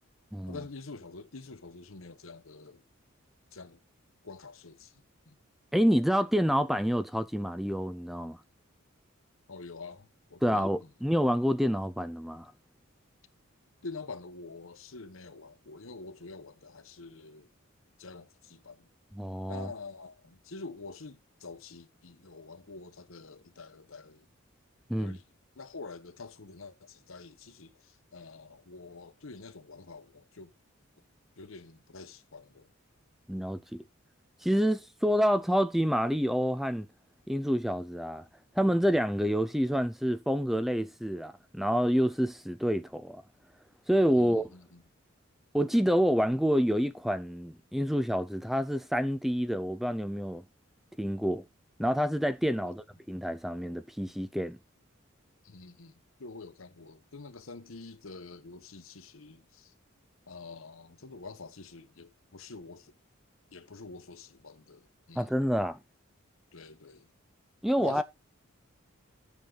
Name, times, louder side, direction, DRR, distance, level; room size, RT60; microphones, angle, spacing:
voice 1, 0.5-2.8 3.5-3.8 4.2-4.9 5.3-5.4 9.5-10.9 13.8-17.5 18.0-18.9 19.5-24.3 25.0-25.2 25.6-30.5 31.4-32.7 44.1-44.8 52.6-52.8 55.4-55.9 56.2-59.7 60.3-62.9 63.5-65.3 66.5-67.1 67.8-68.0, left 3 dB, 75° left, 1.1 m, -46 dB
voice 2, 5.7-8.4 10.4-12.5 19.1-19.7 24.9-25.2 33.3-33.8 34.4-36.9 37.3-38.2 38.6-43.2 43.9-44.5 45.5-50.4 51.0-51.4 51.8-54.6 65.2-65.8 67.6-68.0, equal, ahead, 0.5 m, -28 dB
10.5 x 7.3 x 3.9 m
head